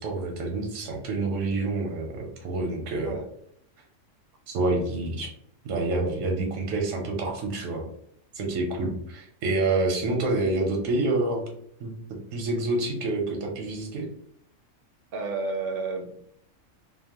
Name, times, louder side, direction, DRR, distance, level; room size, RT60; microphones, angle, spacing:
voice 1, 0.0-3.2 4.5-5.3 5.6-7.8 8.3-11.4 11.8-11.9 12.3-14.1, right 2 dB, 90° right, 1 dB, 1.0 m, -27 dB
voice 2, 15.1-16.2, right 3 dB, 65° right, 4 dB, 0.6 m, -31 dB
2.9 x 2.1 x 2.8 m, 0.66 s
omnidirectional pair, 1.3 m